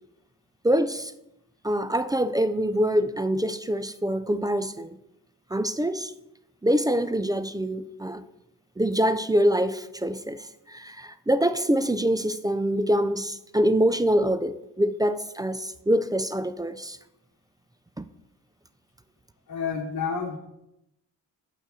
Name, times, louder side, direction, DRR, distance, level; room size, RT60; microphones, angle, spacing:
voice 1, 0.6-1.1 1.6-5.0 5.5-6.1 6.6-8.2 8.8-17.0 18.0-18.1, equal, 10° right, 0.3 m, -25 dB
voice 2, 19.5-20.4, left 5 dB, 50° left, 1.1 m, -29 dB
7.4 x 5.9 x 4.1 m
supercardioid pair, 55°, 39 cm